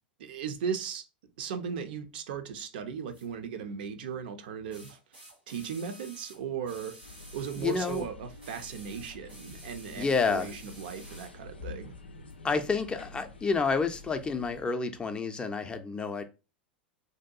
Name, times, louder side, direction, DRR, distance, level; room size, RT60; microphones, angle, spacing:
voice 1, 0.2-1.0 1.4-5.0 5.5-7.0 7.3-11.9, right 7 dB, 65° right, 0.4 m, -37 dB
sound 1, 3.1-3.3 4.7-8.1 8.4-11.4 12.3-12.4, right 1 dB, 90° right, 1.2 m, -51 dB
sound 2, 7.0-14.6, left 3 dB, 90° left, 0.4 m, -48 dB
voice 2, 7.6-8.0 10.0-10.5 12.4-16.2, left 4 dB, 15° left, 0.3 m, -29 dB
2.6 x 2.2 x 2.4 m
hypercardioid pair, 90°, 5 cm